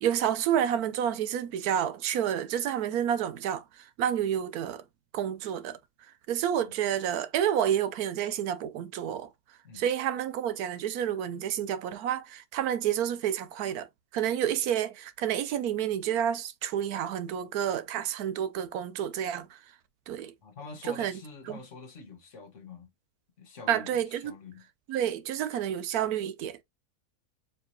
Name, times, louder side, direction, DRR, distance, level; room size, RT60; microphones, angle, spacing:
voice 1, 0.0-4.8 5.1-5.8 6.3-9.3 9.7-13.9 14.1-19.6 20.1-20.3 20.9-21.2 21.5-21.6 23.7-24.4 24.9-26.6, right 10 dB, 80° right, 1.1 m, -29 dB
voice 2, 20.4-22.9 23.4-24.7, left 4 dB, 55° left, 1.4 m, -46 dB
4.6 x 2.9 x 3.0 m
omnidirectional pair, 1.6 m